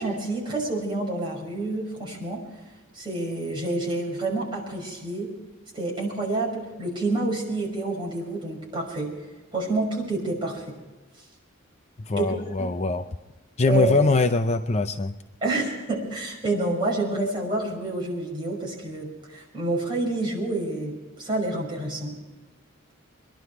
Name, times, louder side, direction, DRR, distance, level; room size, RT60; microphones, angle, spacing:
voice 1, 0.0-2.4 2.9-5.3 5.7-9.1 9.5-10.7 12.2-12.7 13.7-14.0 15.4-22.1, right 2 dB, 25° right, -3 dB, 5.9 m, -28 dB
voice 2, 12.0-13.0 13.6-15.1, left 3 dB, 30° left, 8 dB, 0.5 m, -22 dB
24.0 x 11.5 x 4.6 m, 1.2 s
head